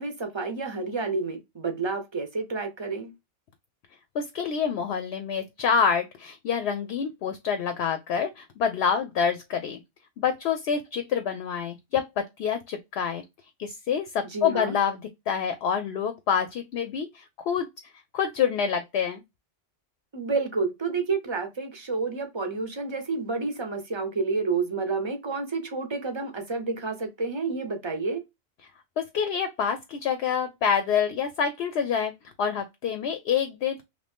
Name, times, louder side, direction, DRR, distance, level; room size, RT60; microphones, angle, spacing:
voice 1, 0.0-3.1 14.2-14.8 20.1-28.2, right 4 dB, 25° right, 0.7 m, -30 dB
voice 2, 4.1-9.8 10.2-13.2 13.6-17.7 18.1-19.2 29.0-32.1 32.4-33.8, left 7 dB, 65° left, 0.7 m, -27 dB
3.1 x 2.6 x 3.3 m
omnidirectional pair, 1.3 m